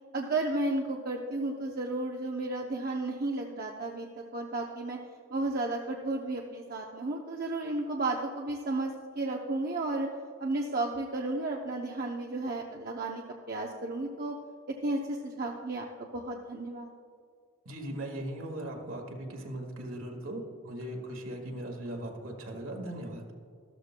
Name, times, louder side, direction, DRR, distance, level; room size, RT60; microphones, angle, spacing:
voice 1, 0.1-5.0 5.3-10.1 10.4-13.2 13.5-14.3 14.8-16.9, right 2 dB, 40° right, 0 dB, 0.6 m, -33 dB
voice 2, 17.6-23.2, right 1 dB, 65° right, 2 dB, 1.8 m, -39 dB
13.5 x 13.0 x 2.2 m, 2.3 s
head